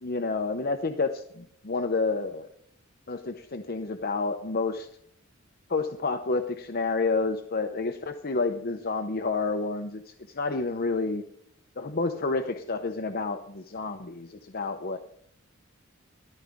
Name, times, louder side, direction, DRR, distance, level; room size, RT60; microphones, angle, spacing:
voice 1, 0.0-2.5 3.1-4.9 5.7-11.2 11.8-15.0, left 3 dB, 50° left, 5 dB, 0.8 m, -29 dB
14.0 x 13.0 x 3.6 m, 0.71 s
head